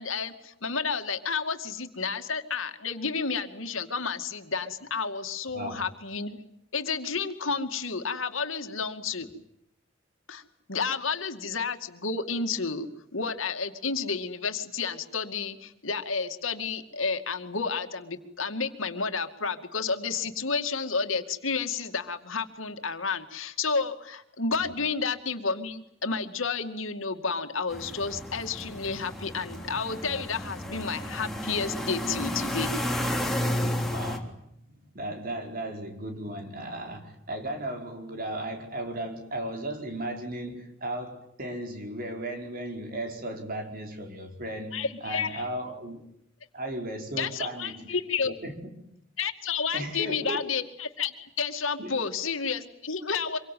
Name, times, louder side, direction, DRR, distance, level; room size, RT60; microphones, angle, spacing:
voice 1, 0.0-6.4 6.7-9.3 10.3-10.4 10.7-32.7 44.7-45.4 47.2-48.3 49.2-53.4, left 5 dB, 85° left, 2.4 m, -31 dB
sound 1, 27.7-34.2, left 1 dB, ahead, 3.3 m, -32 dB
voice 2, 33.9-46.0 46.5-47.9 48.2-48.7 49.7-50.4 51.8-51.9, right 1 dB, 45° right, 5.0 m, -36 dB
26.5 x 23.5 x 9.4 m
head